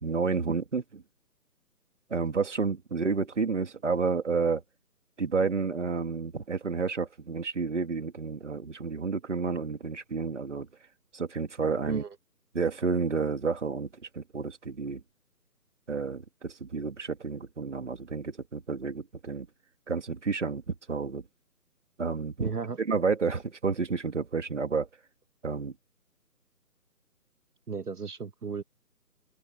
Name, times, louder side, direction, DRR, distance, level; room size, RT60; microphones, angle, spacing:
voice 1, 0.0-1.0 2.1-4.6 5.2-10.7 11.1-12.0 12.5-13.9 14.1-15.0 15.9-19.5 19.9-21.2 22.0-22.5 22.8-24.9 25.4-25.7, right 4 dB, 45° right, 2.7 m, -30 dB
voice 2, 22.4-22.8 27.7-28.6, right 5 dB, 70° right, 1.8 m, -34 dB
open air
hypercardioid pair, 180°, 48 cm